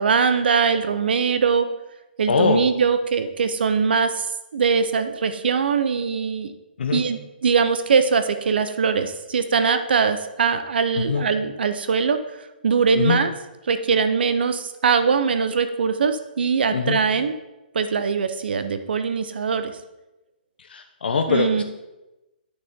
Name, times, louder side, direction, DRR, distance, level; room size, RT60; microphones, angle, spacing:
voice 1, 0.0-1.7 2.2-4.3 4.5-6.5 6.9-12.2 12.6-13.3 13.7-17.3 17.7-19.7 21.3-21.6, right 5 dB, 75° right, 10 dB, 0.7 m, -21 dB
voice 2, 2.3-2.6 6.8-7.0 11.0-11.3 13.0-13.2 16.7-17.0 20.7-21.6, left 5 dB, 75° left, 5 dB, 0.7 m, -22 dB
8.9 x 6.6 x 3.6 m, 1.0 s
hypercardioid pair, 160°, 5 cm